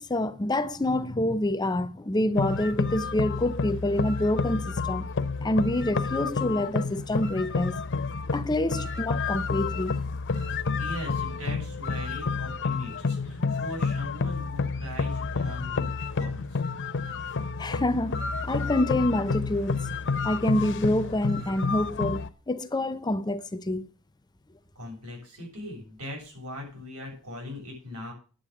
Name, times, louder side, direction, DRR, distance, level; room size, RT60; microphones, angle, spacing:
voice 1, 0.0-5.1 5.4-7.8 8.3-10.0 17.6-19.8 20.2-23.9, left 1 dB, 20° left, 0.6 m, -27 dB
sound 1, 2.3-22.3, left 4 dB, 55° left, 0.8 m, -30 dB
voice 2, 10.8-16.6 24.8-28.1, left 1 dB, 85° right, 7.6 m, -40 dB
10.0 x 7.9 x 7.8 m
head